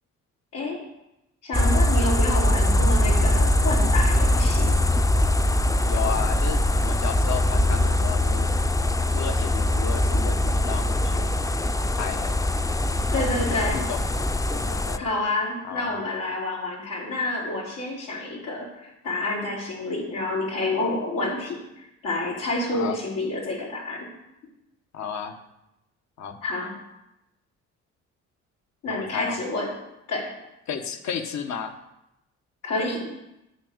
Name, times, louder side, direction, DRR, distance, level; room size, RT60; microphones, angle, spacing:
voice 1, 1.4-4.8 13.1-13.8 15.0-24.1 26.4-26.8 28.8-29.8 30.1-30.3 32.6-33.1, left 2 dB, 90° left, -4 dB, 4.8 m, -29 dB
sound 1, 1.5-15.0, left 1 dB, 10° left, 0.5 m, -22 dB
voice 2, 5.9-8.5 9.1-11.4 12.0-12.3 13.1-14.1 14.5-15.1 15.7-16.0 22.7-23.0 24.9-25.4 26.2-26.4 28.9-29.4 30.7-31.8, left 7 dB, 65° left, 7 dB, 1.4 m, -33 dB
9.5 x 8.8 x 8.0 m, 0.89 s
cardioid pair, 90°, 30 cm